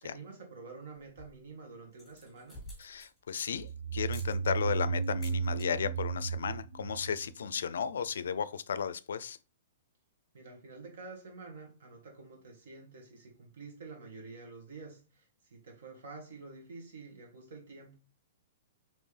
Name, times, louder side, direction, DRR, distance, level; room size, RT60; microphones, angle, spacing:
voice 1, 0.0-2.6 10.3-18.0, right 3 dB, 60° right, 1.5 m, -48 dB
sound 1, 1.0-1.5 1.9-3.7 4.1-4.3 5.0-5.7 6.0-6.3 6.5-6.6 6.8-7.3, left 1 dB, ahead, 1.6 m, -51 dB
voice 2, 2.8-9.4, left 7 dB, 90° left, 0.4 m, -34 dB
sound 2, 3.5-8.1, right 5 dB, 85° right, 0.4 m, -34 dB
4.3 x 3.1 x 3.3 m
hypercardioid pair, 170°, 0 cm